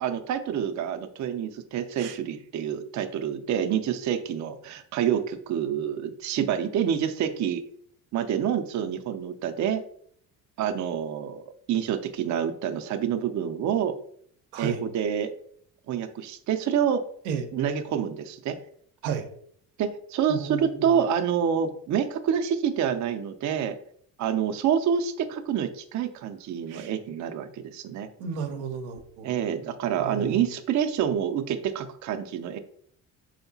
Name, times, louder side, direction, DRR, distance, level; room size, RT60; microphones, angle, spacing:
voice 1, 0.0-7.6 8.1-9.8 10.6-11.4 11.7-13.9 14.6-15.3 15.9-17.0 17.5-18.6 19.8-23.8 24.2-28.1 29.2-32.6, right 8 dB, 40° right, 8 dB, 0.5 m, -27 dB
voice 2, 20.3-20.8 26.7-26.9 28.2-29.3 30.0-30.4, right 7 dB, 80° right, 7 dB, 0.6 m, -33 dB
3.5 x 2.8 x 2.7 m, 0.64 s
hypercardioid pair, 55°, 45 cm